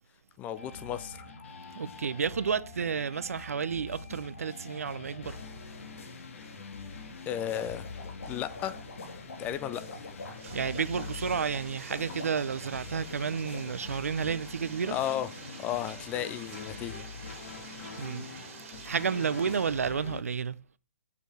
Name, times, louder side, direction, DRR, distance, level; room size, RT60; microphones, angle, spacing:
voice 1, 0.4-1.3 7.3-7.9 8.3-8.8 9.4-9.8 14.8-15.3 15.6-17.0, left 11 dB, 20° left, 0.4 m, -34 dB
sound 1, 0.6-20.2, left 4 dB, 60° left, 1.9 m, -44 dB
voice 2, 1.7-5.4 10.5-15.0 18.0-18.3 18.8-20.6, right 6 dB, 75° right, 0.6 m, -31 dB
sound 2, 7.1-14.0, left 2 dB, 80° left, 2.9 m, -46 dB
Bathtub (filling or washing), 10.2-19.9, right 6 dB, 55° right, 2.1 m, -48 dB
6.8 x 5.1 x 6.2 m
hypercardioid pair, 135°, 8 cm